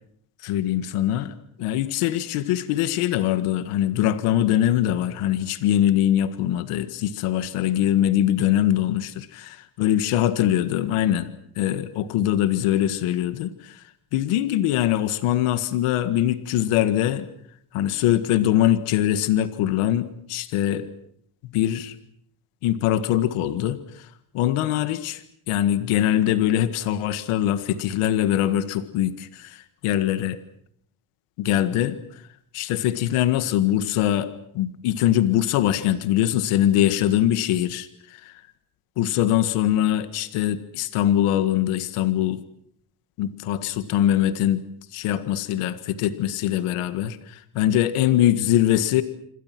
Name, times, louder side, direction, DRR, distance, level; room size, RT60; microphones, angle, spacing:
voice 1, 0.4-1.3 1.6-9.3 9.8-11.3 11.6-13.8 14.1-17.3 17.7-20.9 21.5-21.9 22.6-23.8 24.3-30.4 31.4-32.0 32.5-38.4 39.0-42.4 43.2-44.6 44.9-49.0, left 12 dB, 90° left, 12 dB, 1.9 m, -22 dB
27.0 x 26.0 x 6.1 m, 0.69 s
cardioid pair, 115°, 50 cm